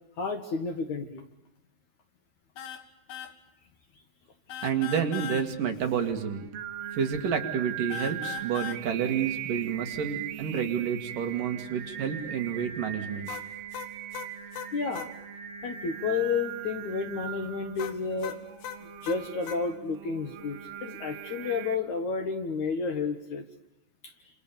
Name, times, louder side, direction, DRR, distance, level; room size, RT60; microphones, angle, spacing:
voice 1, 0.2-1.3 14.7-15.1 15.6-18.4 19.0-23.4 24.0-24.1, left 5 dB, 55° left, 7 dB, 2.4 m, -31 dB
sound 1, 2.6-2.8 3.1-3.3 4.5-5.5 7.9-8.8 13.3-15.1 17.8-19.6, left 9 dB, 70° left, 3.5 m, -38 dB
voice 2, 4.6-6.4 6.9-13.3, right 7 dB, 55° right, 5 dB, 3.5 m, -29 dB
Singing, 5.8-21.8, right 10 dB, 80° right, 3.3 m, -40 dB
29.5 x 28.0 x 7.1 m, 0.86 s
omnidirectional pair, 4.8 m